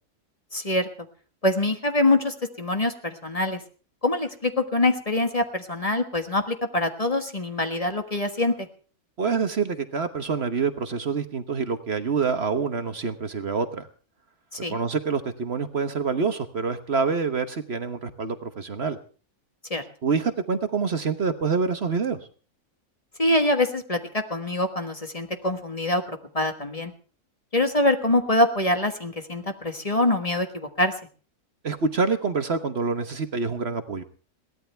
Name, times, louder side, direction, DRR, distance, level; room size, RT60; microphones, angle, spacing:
voice 1, 0.5-0.9 1.4-3.6 4.0-8.7 14.5-14.8 19.7-19.8 23.2-26.9 27.5-31.0, left 2 dB, 25° left, 7 dB, 1.4 m, -24 dB
voice 2, 9.2-13.9 14.7-19.0 20.0-22.2 31.6-34.0, right 5 dB, 45° right, 9 dB, 1.3 m, -26 dB
22.0 x 17.0 x 3.4 m, 0.39 s
omnidirectional pair, 1.6 m